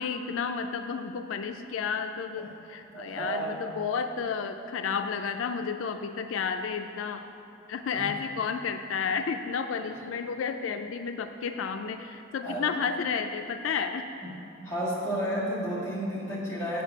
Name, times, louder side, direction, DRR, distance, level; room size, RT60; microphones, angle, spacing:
voice 1, 0.0-7.3 7.7-14.1, left 6 dB, 90° left, 7 dB, 0.4 m, -31 dB
voice 2, 2.9-3.7 7.9-8.1 9.9-10.0 12.4-12.7 14.6-16.8, right 1 dB, 15° left, -7 dB, 1.9 m, -32 dB
8.2 x 4.9 x 5.9 m, 3.0 s
head